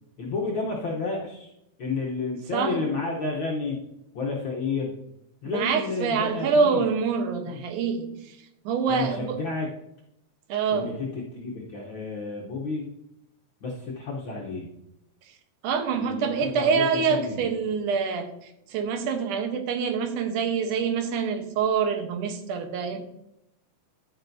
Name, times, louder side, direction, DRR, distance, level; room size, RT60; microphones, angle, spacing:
voice 1, 0.2-1.5 1.8-3.8 4.1-4.9 5.4-6.8 7.5-7.6 8.9-9.7 10.7-12.8 13.6-14.7 15.9-17.5, left 3 dB, 65° left, -2 dB, 1.2 m, -31 dB
voice 2, 5.5-8.4 8.7-9.4 10.5-10.9 15.6-23.0, right 6 dB, 85° right, 6 dB, 2.5 m, -26 dB
10.5 x 9.0 x 2.6 m, 0.83 s
omnidirectional pair, 3.6 m